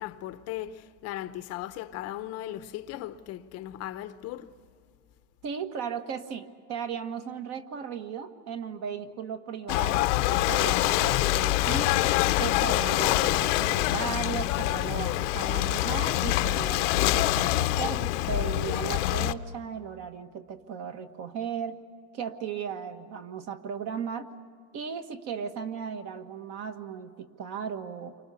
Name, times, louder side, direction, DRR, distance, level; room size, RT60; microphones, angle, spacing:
voice 1, 0.0-4.5, left 13 dB, 40° left, 0.8 m, -37 dB
voice 2, 5.4-12.0 12.4-21.8 22.1-24.3 24.7-28.1, right 7 dB, 40° right, 1.5 m, -36 dB
Ocean / Boat Water vehicle, 9.7-19.3, left 17 dB, 70° left, 0.9 m, -25 dB
29.0 x 25.0 x 7.0 m
supercardioid pair, 155°, 38 cm